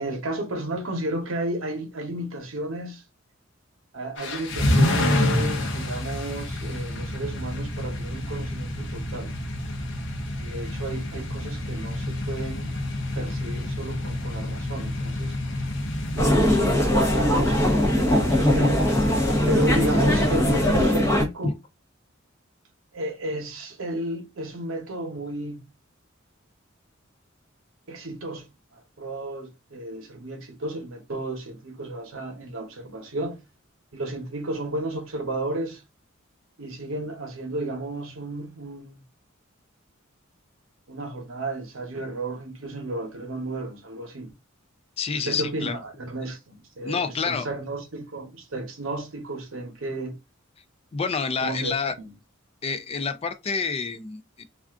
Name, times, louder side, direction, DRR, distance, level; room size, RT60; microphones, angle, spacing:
voice 1, 0.0-3.0 3.9-9.3 10.4-12.8 13.2-15.4 16.1-18.9 19.5-21.5 22.9-25.7 27.9-33.4 33.9-35.8 36.6-39.0 40.9-44.3 45.1-50.2 51.4-52.1, right 2 dB, 75° right, 0.9 m, -33 dB
sound 1, 4.2-20.8, left 1 dB, 60° left, 0.7 m, -28 dB
sound 2, 16.2-21.3, left 1 dB, 15° left, 0.7 m, -21 dB
voice 2, 45.0-45.8 46.8-47.5 50.9-51.9 52.6-54.4, left 5 dB, 30° left, 0.3 m, -28 dB
2.4 x 2.4 x 3.4 m
head